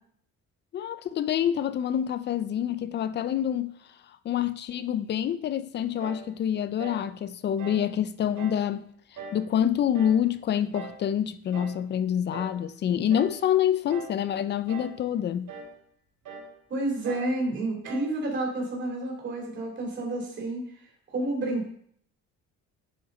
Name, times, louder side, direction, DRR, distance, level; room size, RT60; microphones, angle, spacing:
voice 1, 0.7-3.7 4.2-8.8 9.3-15.5, left 9 dB, 35° left, 0.4 m, -27 dB
sound 1, 6.0-6.3 6.8-7.1 7.6-7.9 8.4-8.7 9.2-9.5 9.9-10.3 10.7-11.0 11.5-11.8 12.3-12.6 13.1-13.4 13.9-14.2 14.7-15.0 15.5-15.7 16.2-16.5 17.0-17.4 17.8-18.1, right 4 dB, 75° right, 1.7 m, -41 dB
voice 2, 16.7-20.6 21.1-21.7, right 2 dB, 35° right, 2.8 m, -30 dB
9.0 x 5.3 x 3.8 m
cardioid pair, 155°, 31 cm